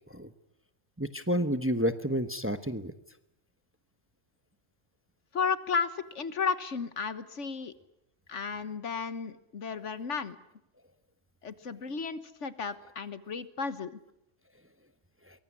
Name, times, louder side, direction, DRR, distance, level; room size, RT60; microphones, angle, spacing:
voice 1, 1.0-2.9, equal, 10° right, 11 dB, 1.0 m, -30 dB
voice 2, 5.3-7.7 8.3-10.4 11.4-14.0, left 5 dB, 70° left, 14 dB, 1.6 m, -33 dB
23.5 x 22.5 x 9.8 m, 0.81 s
omnidirectional pair, 1.3 m